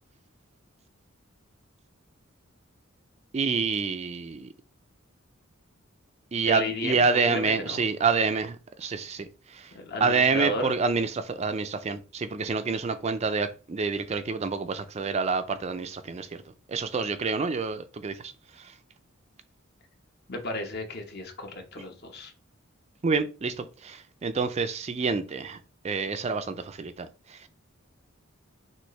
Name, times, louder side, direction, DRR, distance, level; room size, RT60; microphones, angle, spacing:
voice 1, 3.3-4.5 6.3-9.7 10.0-16.4 16.7-18.7 23.0-25.6 25.8-27.5, right 4 dB, 30° right, 0.4 m, -28 dB
voice 2, 6.4-7.0 7.3-7.8 9.7-10.7 20.3-22.3, left 1 dB, 50° left, 1.0 m, -33 dB
6.1 x 2.6 x 3.1 m
head